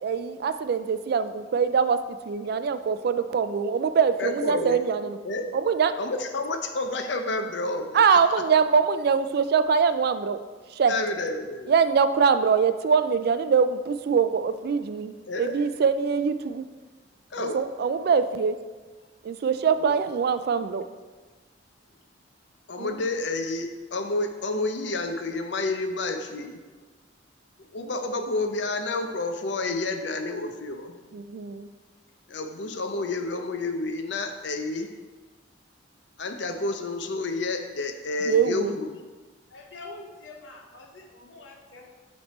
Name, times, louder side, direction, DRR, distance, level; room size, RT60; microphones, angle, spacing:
voice 1, 0.0-2.0 2.3-5.2 5.5-5.9 7.9-10.4 10.7-10.9 11.7-16.6 17.4-18.6 19.2-20.8 22.8-22.9 31.1-31.7 38.3-38.7, right 6 dB, 55° right, 11 dB, 0.3 m, -23 dB
voice 2, 4.2-4.8 5.2-5.5 6.0-8.2 10.9-11.7 15.3-15.5 17.3-17.6 19.8-20.0 22.7-26.6 27.7-31.0 32.3-34.9 36.2-39.0, left 2 dB, 70° left, 6 dB, 0.6 m, -30 dB
voice 3, 39.5-41.9, left 3 dB, 85° left, 1 dB, 1.0 m, -45 dB
8.5 x 3.3 x 4.2 m, 1.4 s
head